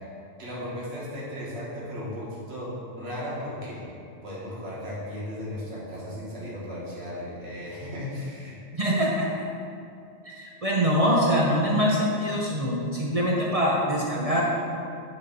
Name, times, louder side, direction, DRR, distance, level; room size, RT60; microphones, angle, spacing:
voice 1, 0.4-2.7 3.0-3.8 4.2-8.6, left 1 dB, 55° right, -7 dB, 1.6 m, -35 dB
voice 2, 8.7-9.4 10.2-14.4, equal, 35° right, -4 dB, 0.6 m, -24 dB
8.6 x 3.1 x 5.2 m, 2.5 s
omnidirectional pair, 1.3 m